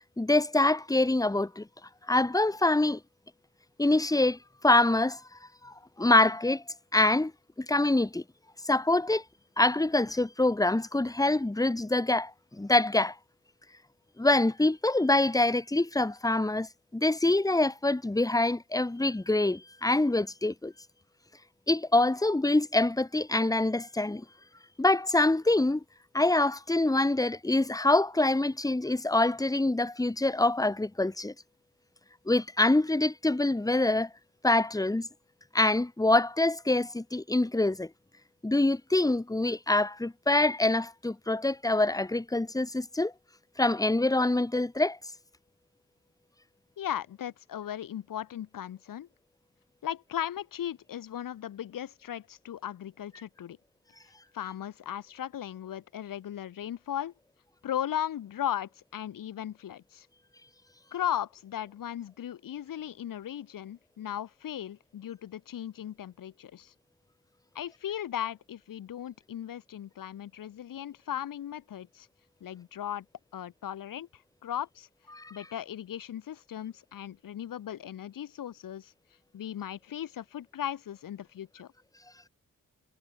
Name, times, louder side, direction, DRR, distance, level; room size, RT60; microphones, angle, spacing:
voice 1, 0.2-1.7 2.1-3.0 3.8-4.4 4.6-5.2 5.6-6.6 6.9-7.3 7.6-8.2 8.6-9.2 9.6-13.1 14.2-16.7 16.9-20.7 21.7-24.2 24.8-25.8 26.1-31.3 32.3-34.1 34.4-35.1 35.5-37.9 38.4-43.1 43.6-45.0 75.1-75.3, left 2 dB, 10° left, 0.9 m, -25 dB
voice 2, 46.8-49.1 49.8-53.6 54.3-57.1 57.6-60.1 60.9-66.7 67.5-72.1 72.4-73.0 73.3-74.9 75.3-78.9 79.3-81.7, left 10 dB, 85° left, 0.9 m, -37 dB
cardioid pair, 50°, 32 cm